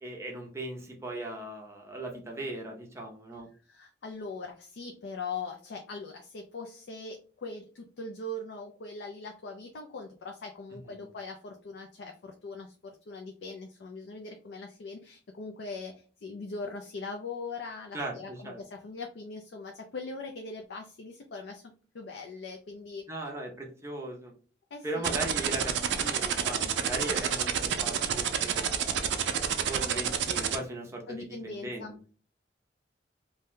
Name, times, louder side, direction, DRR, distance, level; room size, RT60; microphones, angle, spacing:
voice 1, 0.0-3.5 10.9-11.1 17.9-18.6 23.1-24.3 24.8-27.5 27.8-28.8 29.6-32.1, right 1 dB, 15° right, 0 dB, 0.5 m, -38 dB
voice 2, 3.7-21.6 21.9-23.0 24.7-25.0 31.1-32.1, left 3 dB, 70° left, 3 dB, 0.4 m, -41 dB
sound 1, 25.0-30.6, right 8 dB, 80° right, 0.4 m, -28 dB
2.6 x 2.1 x 3.6 m, 0.40 s
head